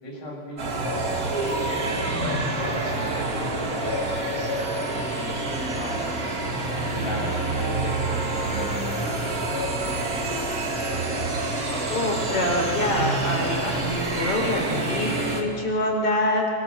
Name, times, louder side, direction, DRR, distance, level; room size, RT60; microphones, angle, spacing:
voice 1, 0.0-1.1 2.2-6.4 6.9-10.1, left 1 dB, 75° left, -3 dB, 8.9 m, -37 dB
sound 1, 0.6-15.4, right 2 dB, 25° right, 2.4 m, -27 dB
voice 2, 11.9-16.5, left 1 dB, 40° left, 2 dB, 5.4 m, -25 dB
27.0 x 24.5 x 7.8 m, 2.2 s
omnidirectional pair, 4.2 m